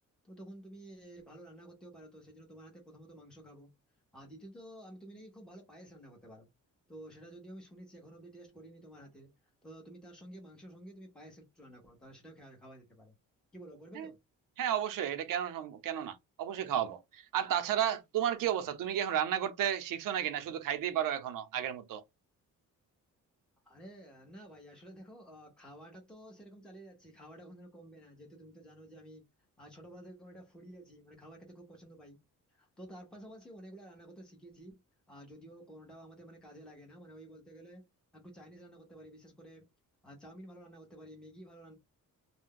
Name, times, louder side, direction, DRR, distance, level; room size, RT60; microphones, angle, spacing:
voice 1, 0.2-3.7 4.1-6.5 6.9-9.3 9.6-13.2 13.5-14.2 23.6-29.2 29.6-32.2 32.5-34.8 35.1-37.8 38.1-39.7 40.0-41.7, right 1 dB, ahead, 1.1 m, -52 dB
voice 2, 14.6-22.0, right 10 dB, 85° right, 0.7 m, -33 dB
2.6 x 2.2 x 3.7 m
cardioid pair, 165°, 32 cm